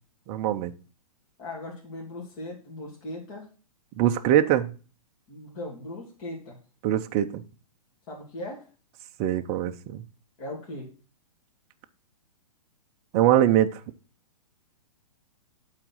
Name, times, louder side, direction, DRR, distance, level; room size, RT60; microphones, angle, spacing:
voice 1, 0.3-0.7 4.0-4.7 6.8-7.4 9.2-10.0 13.1-13.8, right 12 dB, 25° right, 0.5 m, -22 dB
voice 2, 1.4-3.5 5.3-6.6 8.1-8.7 10.4-10.9, left 1 dB, 35° left, 2.8 m, -38 dB
8.6 x 4.1 x 6.1 m
hypercardioid pair, 150°, 20 cm